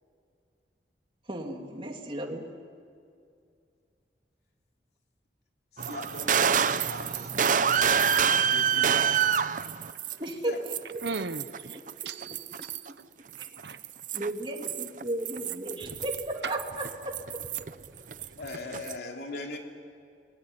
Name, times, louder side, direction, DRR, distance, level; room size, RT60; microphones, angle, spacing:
voice 1, 1.3-2.4 10.2-10.7 11.7-12.1 12.9-13.0 13.4-13.5 14.1-17.1, right 1 dB, 30° right, 2.6 m, -34 dB
voice 2, 5.7-7.3 8.2-9.5 10.4-10.7 18.3-19.6, left 2 dB, 65° left, 3.5 m, -40 dB
sound 1, 5.8-10.3 10.7-12.9 13.3-17.9 18.1-18.9, right 7 dB, 50° right, 0.7 m, -27 dB
voice 3, 11.0-11.8 12.0-12.7 13.4-13.8, right 3 dB, 70° right, 1.1 m, -37 dB
28.5 x 19.5 x 10.0 m
head